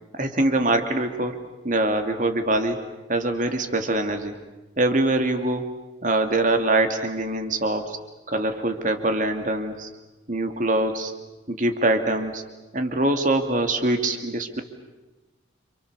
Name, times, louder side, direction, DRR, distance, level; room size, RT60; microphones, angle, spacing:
voice 1, 0.1-1.4 1.6-2.8 3.1-4.3 4.8-5.7 6.0-8.0 8.3-9.9 10.3-11.1 11.5-12.4 12.7-14.6, right 2 dB, 45° right, 6 dB, 2.7 m, -23 dB
30.0 x 28.0 x 7.0 m, 1.1 s
head